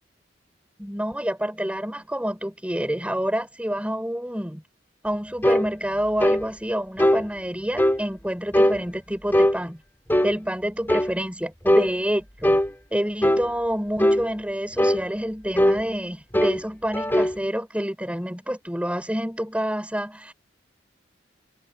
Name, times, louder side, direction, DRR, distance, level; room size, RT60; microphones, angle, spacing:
voice 1, 0.8-4.6 5.0-9.8 10.2-12.6 12.9-20.3, equal, 5° right, 5.8 m, -28 dB
sound 1, 5.4-5.7 6.2-6.4 7.0-7.2 7.8-8.0 8.5-8.8 9.3-9.6 10.1-10.4 10.9-11.1 11.7-11.9 12.4-12.7 13.2-13.5 14.0-14.2 14.8-15.0 15.6-15.8 16.3-16.6 16.9-17.4, equal, 10° left, 2.8 m, -19 dB
head